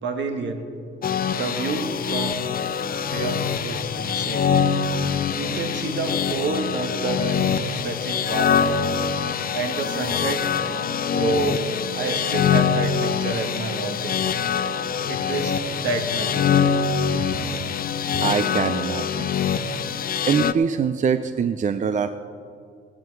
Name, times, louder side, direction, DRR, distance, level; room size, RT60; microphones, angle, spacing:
voice 1, 0.0-0.7 1.3-2.5 3.0-4.5 5.4-8.7 9.5-10.4 11.1-14.4 15.1-16.7, right 3 dB, 65° right, 5 dB, 1.5 m, -29 dB
sound 1, 1.0-20.5, left 7 dB, 50° left, 0.6 m, -24 dB
voice 2, 18.2-19.6 20.3-22.1, right 6 dB, 40° right, 11 dB, 0.5 m, -24 dB
16.0 x 11.0 x 4.6 m, 2.4 s
cardioid pair, 90°, 20 cm